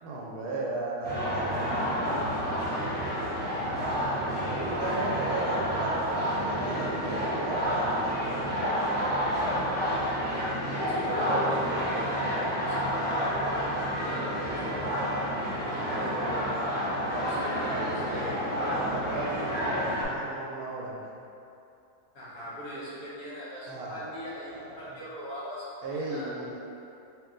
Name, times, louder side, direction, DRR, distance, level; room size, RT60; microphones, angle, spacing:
voice 1, 0.0-2.3 4.5-10.0 15.7-16.4 16.7-18.2 18.6-21.1 23.7-25.0 25.8-26.6, right 2 dB, 80° right, -3 dB, 1.1 m, -37 dB
sound 1, 1.0-20.0, equal, 10° left, 0.6 m, -29 dB
voice 2, 10.9-13.7 14.0-15.2 15.9-16.4 17.2-18.3 22.1-26.3, equal, 65° left, -9 dB, 1.4 m, -40 dB
3.2 x 2.9 x 3.6 m, 2.7 s
omnidirectional pair, 1.6 m